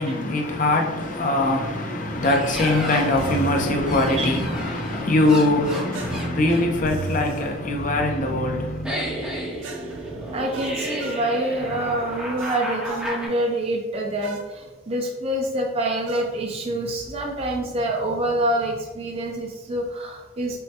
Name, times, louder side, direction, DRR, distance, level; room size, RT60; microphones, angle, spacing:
voice 1, 0.0-8.8, left 2 dB, 40° left, 0.5 m, -22 dB
sound 1, 2.0-13.3, right 1 dB, 5° right, 0.9 m, -32 dB
sound 2, 3.1-3.8 5.9-7.5 9.6-11.3 12.4-13.1 14.2-14.5 16.1-16.3, right 3 dB, 85° right, 0.5 m, -35 dB
voice 2, 10.3-20.6, right 1 dB, 30° right, 0.3 m, -26 dB
5.4 x 2.2 x 2.8 m
head